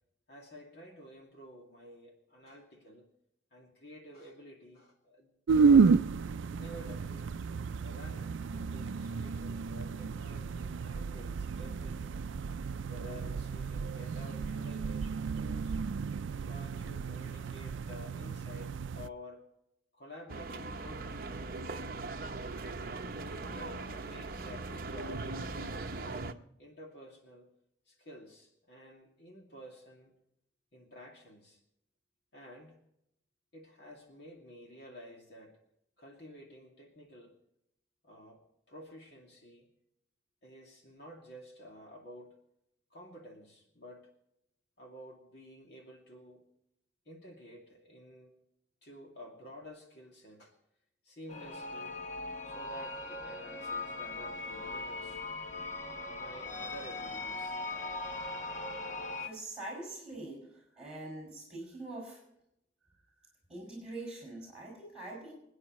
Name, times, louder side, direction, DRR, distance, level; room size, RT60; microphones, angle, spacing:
voice 1, 0.3-3.1 3.5-5.3 5.7-6.1 6.5-7.4 7.8-12.2 12.9-15.8 16.5-19.5 19.9-21.4 23.2-25.8 26.6-27.5 27.9-30.1 30.7-31.6 32.3-32.8 33.5-35.6 36.0-37.4 38.0-39.7 40.4-42.4 42.9-44.1 44.8-46.4 47.1-48.4 48.8-50.5 51.0-52.0 52.4-55.2 56.1-57.6, equal, 60° left, 0 dB, 2.4 m, -51 dB
sound 1, 5.5-19.1, right 5 dB, 90° right, 0.4 m, -31 dB
sound 2, 20.3-26.3, right 3 dB, 50° right, 0.7 m, -40 dB
sound 3, 51.3-59.3, left 2 dB, 40° left, 1.2 m, -40 dB
voice 2, 59.2-62.2 63.5-65.3, right 2 dB, 5° right, -2 dB, 6.2 m, -44 dB
26.5 x 9.7 x 3.1 m, 0.77 s
head